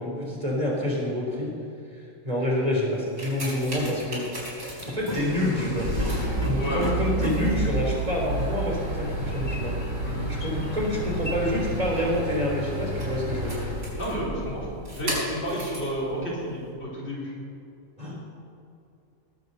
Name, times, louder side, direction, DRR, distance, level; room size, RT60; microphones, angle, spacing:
voice 1, 0.0-1.5 2.2-4.3 4.9-5.9 6.4-9.8 10.3-13.7 18.0-18.2, left 1 dB, 30° right, -3 dB, 3.8 m, -27 dB
sound 1, 2.9-15.9 16.7-16.8, right 1 dB, 85° right, 4.8 m, -31 dB
sound 2, 3.8-4.0 4.8-12.3, left 2 dB, 20° left, 1.6 m, -37 dB
voice 2, 6.6-7.0 10.0-10.3 14.0-17.3, equal, 50° left, -6 dB, 4.5 m, -31 dB
19.0 x 7.8 x 6.7 m, 2.6 s
omnidirectional pair, 1.4 m